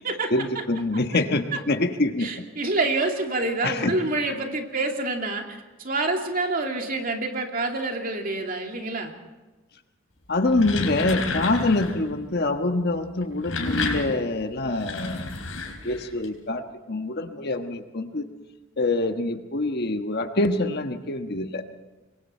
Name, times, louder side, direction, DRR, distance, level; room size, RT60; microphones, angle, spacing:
voice 1, 0.3-2.4 3.6-3.9 10.3-15.3 15.8-18.3 18.8-21.6, left 2 dB, 55° left, 6 dB, 1.4 m, -25 dB
voice 2, 2.2-9.1, right 2 dB, 45° right, 3 dB, 2.5 m, -27 dB
sound 1, 10.3-12.0 13.2-16.3, left 3 dB, 80° left, 4.0 m, -31 dB
26.5 x 22.0 x 4.5 m, 1.2 s
head